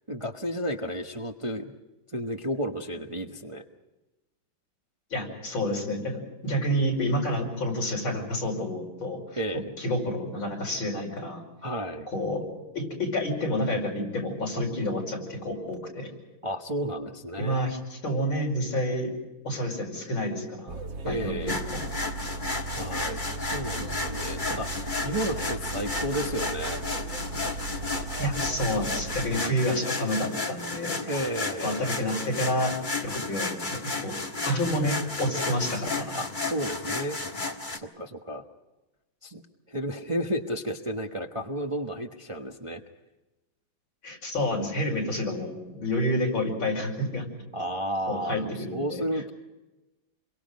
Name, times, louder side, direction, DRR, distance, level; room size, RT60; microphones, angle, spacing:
voice 1, 0.1-1.7 2.1-3.6 9.4-9.7 11.6-12.1 16.4-17.8 21.0-21.6 22.7-26.8 31.1-31.9 36.1-37.2 37.7-38.4 39.2-39.4 39.7-42.8 47.5-49.3, equal, 20° right, 3 dB, 0.9 m, -32 dB
voice 2, 5.1-9.4 9.8-11.4 12.1-12.4 12.7-16.1 17.3-19.1 19.4-21.8 28.2-31.0 31.6-32.7 33.0-34.1 34.4-36.2 44.0-47.3 48.1-49.0, left 1 dB, 80° left, 0 dB, 6.4 m, -29 dB
sound 1, 20.7-29.4, right 3 dB, 70° right, 2.3 m, -37 dB
sound 2, 21.5-37.8, left 3 dB, 25° left, 1.7 m, -33 dB
27.5 x 23.5 x 5.3 m, 1.1 s
omnidirectional pair, 2.1 m